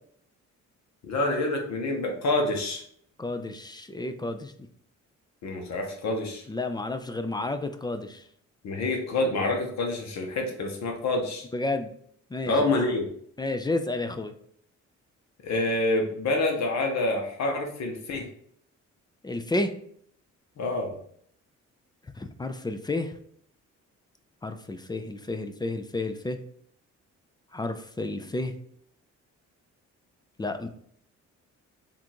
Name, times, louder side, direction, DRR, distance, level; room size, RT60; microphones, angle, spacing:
voice 1, 1.0-2.8 5.4-6.4 8.6-11.4 12.4-13.1 15.4-18.3 20.6-20.9, left 2 dB, 65° left, 2 dB, 1.1 m, -27 dB
voice 2, 3.2-4.5 6.5-8.2 11.5-11.9 12.3-12.7 13.4-14.3 19.2-19.7 22.2-23.1 24.4-26.4 27.5-28.5 30.4-30.7, left 2 dB, 15° left, 8 dB, 0.4 m, -31 dB
3.7 x 2.5 x 4.5 m, 0.63 s
cardioid pair, 90°, 30 cm